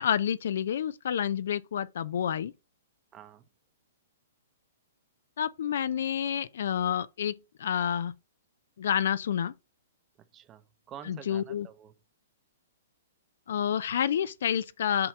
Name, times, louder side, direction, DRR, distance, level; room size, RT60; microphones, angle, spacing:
voice 1, 0.0-2.5 5.4-8.1 8.8-9.5 11.1-11.7 13.5-15.1, left 9 dB, 65° left, 0.5 m, -29 dB
voice 2, 3.1-3.5 10.2-11.9, right 9 dB, 25° right, 0.8 m, -48 dB
7.6 x 2.8 x 5.9 m
hypercardioid pair, 125°, 0 cm